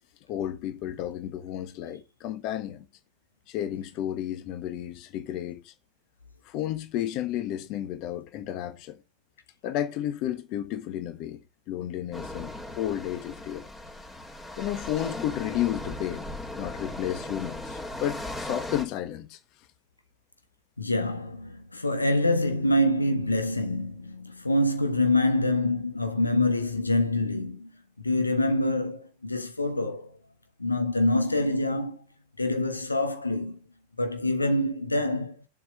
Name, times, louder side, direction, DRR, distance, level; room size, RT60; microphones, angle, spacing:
voice 1, 0.3-2.8 3.5-5.7 6.4-9.0 9.6-11.4 11.7-13.7 14.6-16.3 16.6-19.4, left 11 dB, 40° left, 1.4 m, -32 dB
sound 1, 12.1-18.8, left 1 dB, 15° left, 2.9 m, -38 dB
voice 2, 20.8-27.7 28.0-30.1 30.6-32.0 32.4-33.6 34.0-35.3, left 1 dB, 80° left, 1.3 m, -25 dB
7.6 x 6.2 x 5.2 m
figure-of-eight pair, 90°, 0 cm